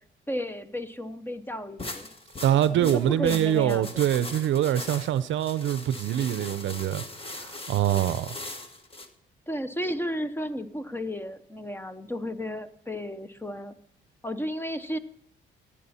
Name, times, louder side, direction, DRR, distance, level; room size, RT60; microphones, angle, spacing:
voice 1, 0.3-2.1 2.5-4.1 9.5-13.7 14.2-15.0, equal, 10° left, 0.8 m, -33 dB
sound 1, 1.8-9.1, left 2 dB, 30° left, 1.3 m, -39 dB
voice 2, 2.4-7.0 7.3-8.4, right 11 dB, 70° right, 0.6 m, -24 dB
16.0 x 8.7 x 4.2 m
cardioid pair, 90°, 20 cm